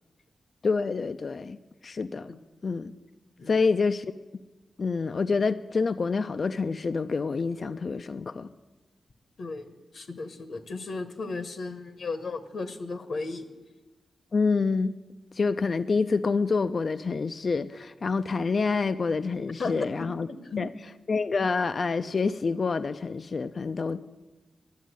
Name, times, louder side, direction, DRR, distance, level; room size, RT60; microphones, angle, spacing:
voice 1, 0.6-1.6 1.8-2.3 2.6-2.9 3.5-4.1 4.8-8.5 14.3-15.0 15.4-20.3 20.6-20.7 21.1-24.0, left 4 dB, 50° left, 11 dB, 0.4 m, -27 dB
voice 2, 9.4-9.7 9.9-13.5 19.6-19.9 20.3-20.6, left 3 dB, 70° left, 9 dB, 0.9 m, -35 dB
10.0 x 7.3 x 9.4 m, 1.2 s
cardioid pair, 65°, 0 cm